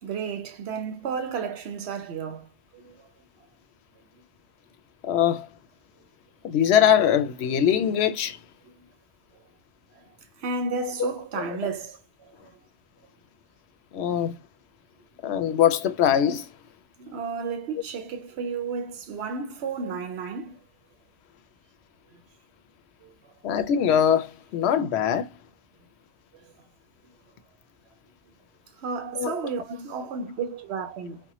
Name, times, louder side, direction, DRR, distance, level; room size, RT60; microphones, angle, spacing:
voice 1, 0.0-2.5 2.7-3.0 10.4-12.5 17.0-20.6 22.1-22.2 23.0-23.1 28.8-31.2, right 5 dB, 85° right, 0.9 m, -32 dB
voice 2, 5.0-5.5 6.4-8.4 10.8-11.1 11.4-11.6 13.9-14.3 15.2-16.5 23.4-25.3 29.2-29.4, left 9 dB, 90° left, 0.9 m, -22 dB
4.3 x 2.1 x 3.0 m
omnidirectional pair, 1.1 m